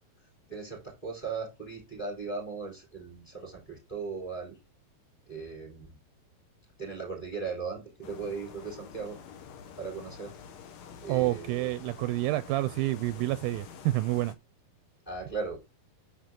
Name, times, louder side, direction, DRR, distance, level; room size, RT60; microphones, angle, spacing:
voice 1, 0.5-4.6 5.3-6.0 6.8-9.2 9.8-10.3 11.0-11.7 15.1-15.6, right 4 dB, 10° left, 3.6 m, -38 dB
sound 1, 8.0-14.3, left 7 dB, 70° left, 1.8 m, -48 dB
voice 2, 11.1-14.4, right 17 dB, 80° right, 2.2 m, -28 dB
9.0 x 4.8 x 3.7 m
omnidirectional pair, 4.3 m